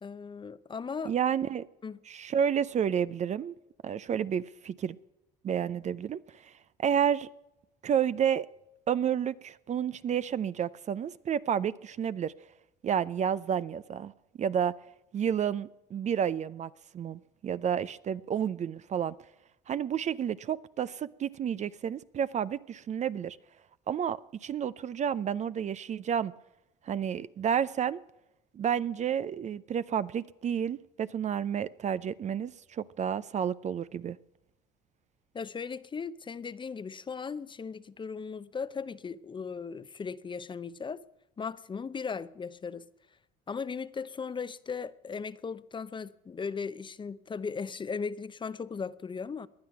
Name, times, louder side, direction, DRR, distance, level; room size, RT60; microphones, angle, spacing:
voice 1, 0.0-1.1 1.8-2.0 35.3-41.0 41.4-42.9 43.5-49.5, left 5 dB, 25° left, 0.7 m, -37 dB
voice 2, 1.0-1.7 2.1-3.5 3.8-5.0 5.4-6.5 6.8-7.3 7.8-8.5 8.9-12.3 12.8-14.1 14.4-14.7 15.1-19.1 19.7-23.4 23.9-26.3 26.8-28.0 28.5-34.2, right 8 dB, 40° right, 0.6 m, -30 dB
19.5 x 11.0 x 5.8 m
supercardioid pair, 85°, 19 cm